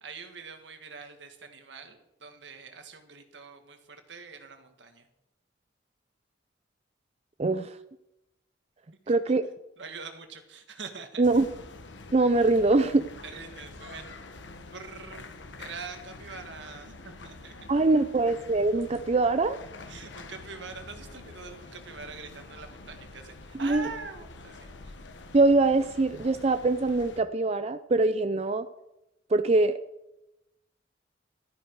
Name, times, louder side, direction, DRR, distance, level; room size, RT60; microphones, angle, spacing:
voice 1, 0.0-5.1 9.1-9.2 9.8-11.2 13.2-14.3 14.7-17.7 19.8-24.9, right 4 dB, 75° right, 6 dB, 1.8 m, -44 dB
voice 2, 7.4-7.8 9.1-9.5 11.2-11.5 12.1-13.1 17.7-19.6 23.6-23.9 25.3-28.7 29.3-29.8, right 3 dB, 35° right, 11 dB, 0.5 m, -23 dB
sound 1, 11.2-27.2, left 3 dB, 80° left, 1.4 m, -46 dB
15.0 x 13.5 x 4.7 m, 0.92 s
head